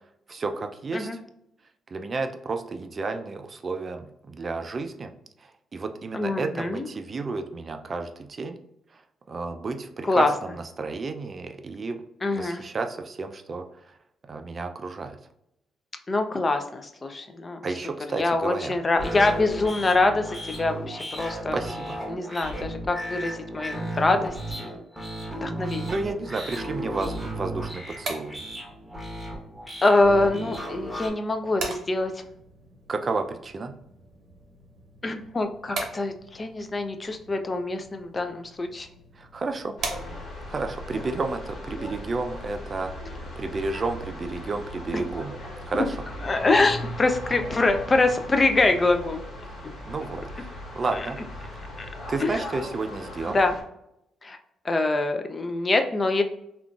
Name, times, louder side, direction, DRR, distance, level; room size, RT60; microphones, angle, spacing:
voice 1, 0.3-1.2 1.9-5.1 5.7-8.6 9.3-12.0 12.3-13.6 14.3-15.2 17.6-18.7 21.5-22.0 25.9-28.4 32.9-33.7 39.2-39.7 40.5-43.0 43.4-45.3 45.7-46.0 49.8-51.6 52.1-53.4, right 3 dB, 40° right, 6 dB, 0.4 m, -31 dB
voice 2, 6.1-6.9 10.0-10.3 12.2-12.6 16.1-17.6 18.2-21.6 22.1-24.3 24.6-24.7 25.3-25.9 29.8-32.1 35.0-38.9 44.9-45.0 45.7-45.8 46.2-49.2 50.9-51.0 51.8-51.9 52.2-52.4 53.3-53.5 54.2-54.4 54.6-56.2, left 2 dB, 30° left, 6 dB, 0.4 m, -24 dB
sound 1, 18.9-31.1, right 1 dB, ahead, 1.0 m, -34 dB
sound 2, 27.7-40.5, right 3 dB, 65° right, 0.7 m, -41 dB
sound 3, 39.8-53.6, left 1 dB, 80° left, 1.2 m, -38 dB
3.6 x 2.4 x 2.3 m, 0.80 s
cardioid pair, 90°, 0 cm